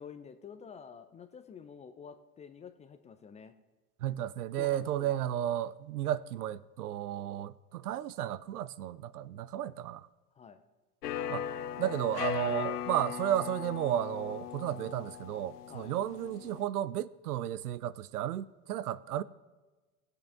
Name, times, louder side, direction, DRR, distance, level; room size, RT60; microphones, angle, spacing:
voice 1, 0.0-3.5 4.6-5.2 10.3-10.6 15.7-15.9, left 6 dB, 15° left, 0.4 m, -49 dB
voice 2, 4.0-10.1 11.3-11.5 11.8-19.2, right 11 dB, 75° right, 0.6 m, -33 dB
sound 1, 11.0-16.6, left 9 dB, 80° left, 0.7 m, -38 dB
16.5 x 8.0 x 3.5 m
hypercardioid pair, 90°, 46 cm